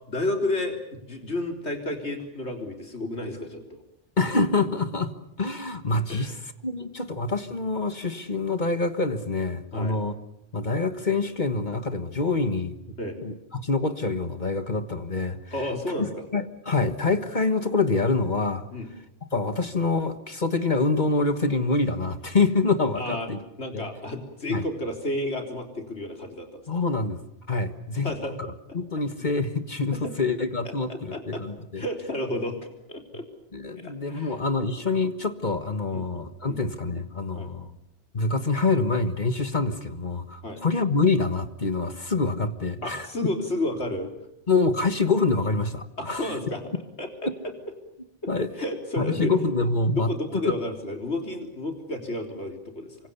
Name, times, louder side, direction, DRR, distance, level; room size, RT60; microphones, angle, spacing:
voice 1, 0.1-3.8 6.1-6.3 9.7-10.0 13.0-13.2 15.5-16.2 18.7-18.9 23.0-23.3 23.6-26.6 28.0-28.3 29.2-29.3 29.9-30.1 30.6-31.4 31.8-33.2 33.8-34.4 35.9-36.0 36.5-36.6 37.3-37.5 40.4-40.6 42.8-44.3 46.0-46.6 47.0-47.5 48.6-49.3 50.0-53.0, left 1 dB, 90° left, 4 dB, 4.1 m, -31 dB
voice 2, 4.2-5.1 5.4-6.3 6.6-10.1 10.5-12.7 13.2-15.5 16.0-18.7 19.3-23.4 23.7-23.9 24.5-24.6 26.7-27.2 27.5-28.1 28.7-31.8 33.5-37.7 38.1-43.1 44.5-46.3 48.3-48.5 49.0-50.1, left 3 dB, 45° left, 10 dB, 1.6 m, -26 dB
28.0 x 25.0 x 7.0 m, 0.79 s
omnidirectional pair, 1.1 m